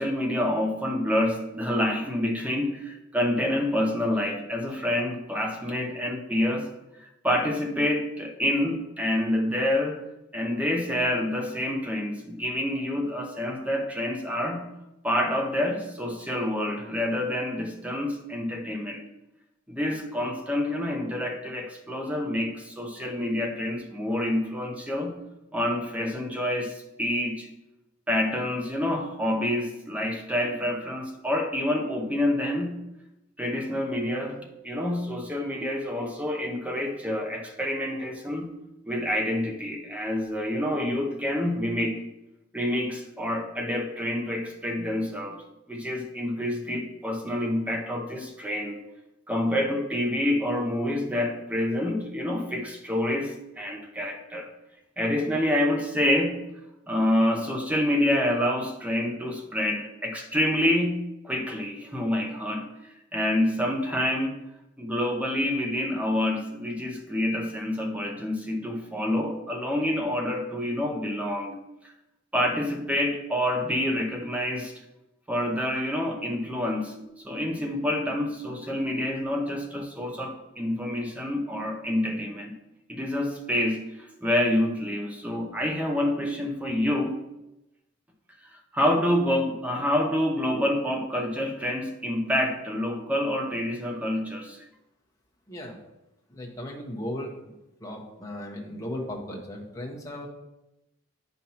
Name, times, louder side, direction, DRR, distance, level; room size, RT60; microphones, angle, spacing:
voice 1, 0.0-6.7 7.0-10.0 10.3-14.7 15.0-19.1 19.7-25.2 25.5-27.5 28.1-32.8 33.4-38.5 38.9-42.0 42.5-45.4 45.7-48.8 49.3-54.5 55.0-56.4 56.9-62.7 63.1-64.3 64.8-71.6 72.3-74.7 75.3-76.9 77.2-82.5 82.9-87.2 88.4-94.6, left 1 dB, 5° right, 2 dB, 0.7 m, -27 dB
voice 2, 96.3-97.3 97.8-100.3, left 1 dB, 15° left, -2 dB, 1.2 m, -36 dB
9.0 x 5.5 x 2.9 m, 0.92 s
head